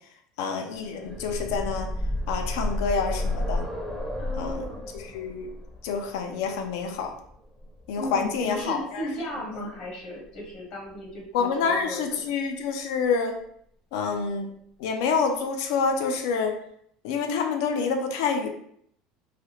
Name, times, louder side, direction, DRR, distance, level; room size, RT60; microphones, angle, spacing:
voice 1, 0.4-1.9 2.3-3.6 4.4-4.7 4.9-5.5 5.8-7.1 7.9-9.1 9.6-9.7 11.3-13.3 13.9-14.5 14.8-16.6 17.0-18.5, left 5 dB, 85° left, 5 dB, 0.4 m, -27 dB
sound 1, 0.8-8.6 9.8-9.9 10.2-10.3, left 1 dB, 5° left, 0.5 m, -32 dB
voice 2, 4.2-4.8 7.9-12.3, left 1 dB, 50° left, -1 dB, 0.9 m, -35 dB
3.2 x 2.3 x 2.9 m, 0.68 s
cardioid pair, 150°, 2 cm